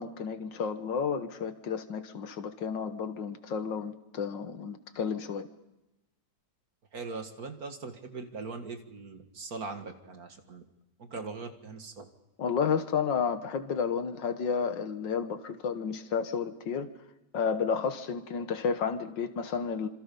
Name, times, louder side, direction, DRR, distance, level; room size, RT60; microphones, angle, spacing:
voice 1, 0.0-5.5 12.4-16.9 17.3-19.9, left 6 dB, 75° left, 9 dB, 1.9 m, -31 dB
voice 2, 6.9-10.6 11.0-12.1, right 4 dB, 50° right, 6 dB, 2.2 m, -40 dB
27.0 x 26.5 x 5.4 m, 0.95 s
omnidirectional pair, 2.0 m